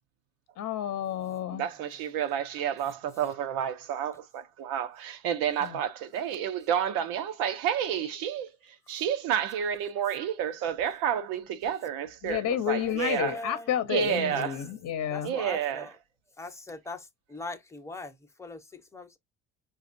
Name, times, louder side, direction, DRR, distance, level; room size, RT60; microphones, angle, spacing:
voice 1, 0.6-1.7 5.6-5.8 7.9-8.0 12.2-15.4, left 10 dB, 45° left, 0.8 m, -30 dB
voice 2, 1.5-13.4 13.9-14.6 15.2-15.9, right 9 dB, 80° right, 0.7 m, -30 dB
voice 3, 13.2-13.7 14.3-14.5 15.1-15.9 16.4-19.2, left 2 dB, 10° left, 0.8 m, -41 dB
5.1 x 2.4 x 2.5 m
supercardioid pair, 95°, 35 cm